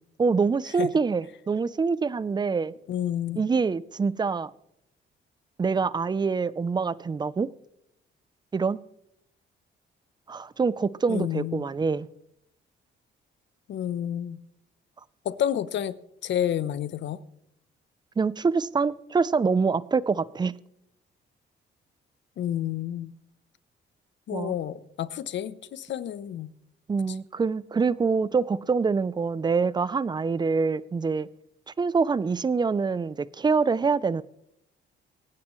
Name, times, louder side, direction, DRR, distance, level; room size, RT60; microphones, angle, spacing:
voice 1, 0.2-2.7 3.4-4.5 5.6-7.5 8.5-8.8 10.3-12.1 18.2-20.5 24.3-24.5 26.9-31.3 31.8-34.2, right 5 dB, 20° right, 0.5 m, -25 dB
voice 2, 2.9-3.4 11.1-11.7 13.7-14.4 15.2-15.9 16.2-17.2 22.4-23.1 24.3-26.5, left 10 dB, 65° left, 0.8 m, -30 dB
25.0 x 9.6 x 3.1 m
cardioid pair, 90°, 20 cm